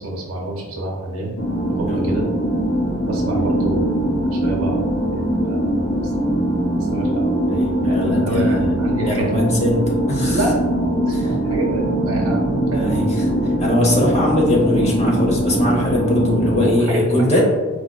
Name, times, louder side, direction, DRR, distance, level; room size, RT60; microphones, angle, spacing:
voice 1, 0.0-2.3 3.1-6.5 6.8-7.2 7.5-9.6 10.2-12.9 16.8-17.4, right 1 dB, 90° right, -2 dB, 0.6 m, -28 dB
sound 1, 1.4-16.7, right 1 dB, 65° left, 0.8 m, -21 dB
voice 2, 7.5-8.7 9.0-9.8 10.1-10.4 11.1-11.2 12.7-17.5, left 1 dB, 30° left, -2 dB, 0.7 m, -20 dB
4.3 x 2.3 x 2.2 m, 1.4 s
head